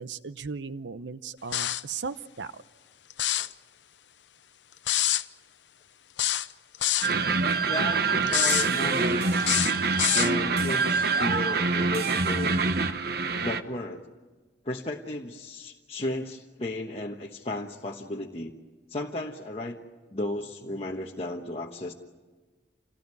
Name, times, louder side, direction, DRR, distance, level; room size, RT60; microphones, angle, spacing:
voice 1, 0.0-2.6, right 5 dB, 90° right, 13 dB, 0.8 m, -37 dB
Spray Sounds, 1.5-1.9 3.1-3.5 4.9-5.2 6.2-7.1 8.3-8.7 9.4-10.3, left 13 dB, 85° left, 0.7 m, -26 dB
sound 1, 7.0-13.6, right 4 dB, 60° right, 1.1 m, -25 dB
voice 2, 7.7-9.5 10.1-12.5 13.4-14.1 14.6-18.5 18.9-19.8 20.1-21.9, left 1 dB, 35° left, -1 dB, 1.3 m, -34 dB
28.0 x 18.0 x 9.8 m, 1.3 s
head